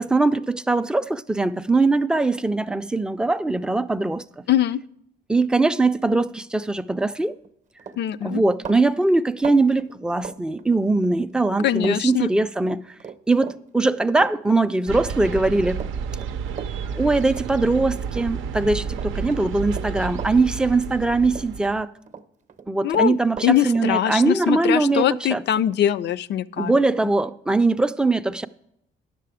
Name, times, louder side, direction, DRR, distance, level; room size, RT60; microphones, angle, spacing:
voice 1, 0.0-4.4 5.3-7.3 8.2-12.9 13.3-15.8 17.0-21.9 22.7-25.4 26.6-28.5, right 3 dB, 5° right, 0.4 m, -21 dB
voice 2, 4.5-4.8 8.0-8.4 11.6-12.3 22.8-23.2 23.4-26.7, left 11 dB, 60° left, 0.4 m, -22 dB
Run, 7.3-7.5 7.8-11.1 11.4-12.0 12.2-18.6 18.9-21.0 21.3-22.2 22.5-25.8, right 6 dB, 40° right, 0.7 m, -39 dB
sound 1, 14.9-21.8, right 6 dB, 85° right, 0.6 m, -31 dB
10.0 x 6.8 x 4.8 m
cardioid pair, 90°, 20 cm